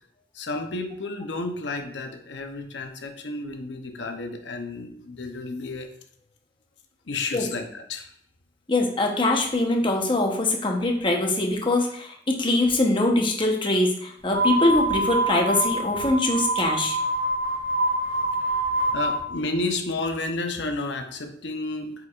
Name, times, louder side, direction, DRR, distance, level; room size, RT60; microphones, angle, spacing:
voice 1, 0.3-5.9 7.1-8.1 18.9-21.9, left 2 dB, 80° left, 5 dB, 0.8 m, -31 dB
voice 2, 8.7-17.0, left 2 dB, 30° left, 1 dB, 1.0 m, -23 dB
sound 1, 14.3-19.2, right 1 dB, 85° right, 1.1 m, -25 dB
8.2 x 4.8 x 2.5 m, 0.65 s
head